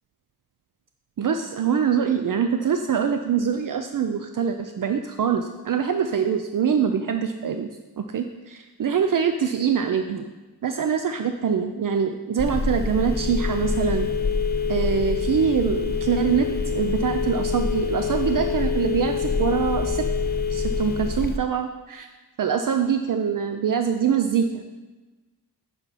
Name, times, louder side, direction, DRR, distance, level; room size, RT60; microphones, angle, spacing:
voice 1, 1.2-7.7 8.0-10.2 10.6-14.1 14.7-20.0 20.5-22.1 22.4-24.7, right 7 dB, 55° right, 7 dB, 0.5 m, -24 dB
Telephone, 12.4-21.4, left 5 dB, 25° left, 0.5 m, -25 dB
9.8 x 6.0 x 4.1 m, 1.2 s
wide cardioid pair, 120°, 39 cm